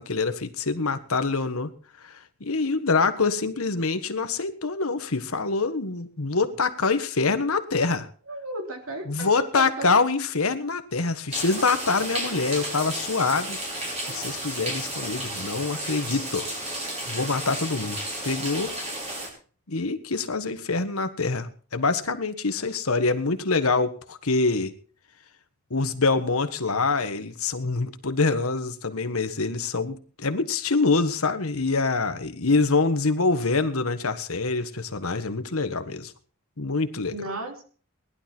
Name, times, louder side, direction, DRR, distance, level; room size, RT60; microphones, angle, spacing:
voice 1, 0.0-1.7 2.0-8.1 9.1-16.5 17.1-18.8 19.7-24.7 25.7-36.1 36.6-37.2, left 3 dB, 75° left, 9 dB, 1.5 m, -25 dB
voice 2, 8.3-9.9 37.1-37.6, right 2 dB, 70° right, 3 dB, 3.3 m, -34 dB
sound 1, 11.3-19.3, right 1 dB, 30° right, 5.6 m, -33 dB
18.5 x 11.5 x 4.5 m, 0.42 s
head